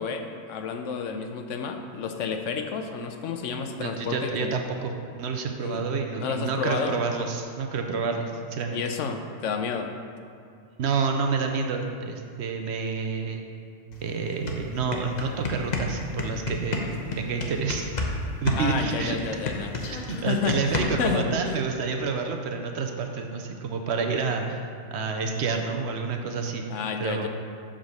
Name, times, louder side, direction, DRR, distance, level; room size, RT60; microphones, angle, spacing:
voice 1, 0.0-4.5 5.6-5.8 6.2-7.0 8.7-9.9 18.6-19.7 20.3-20.6 21.0-21.3 26.7-27.3, left 6 dB, 80° left, 6 dB, 1.0 m, -30 dB
voice 2, 3.8-4.9 5.2-8.8 10.8-13.4 14.0-16.8 17.2-17.9 18.4-19.2 19.9-24.6 24.9-26.6 27.0-27.3, right 5 dB, 65° right, 4 dB, 0.9 m, -29 dB
sound 1, 13.9-14.0 14.3-18.2 18.5-21.2, left 3 dB, 40° left, 0.8 m, -30 dB
7.3 x 3.7 x 6.4 m, 2.3 s
omnidirectional pair, 1.2 m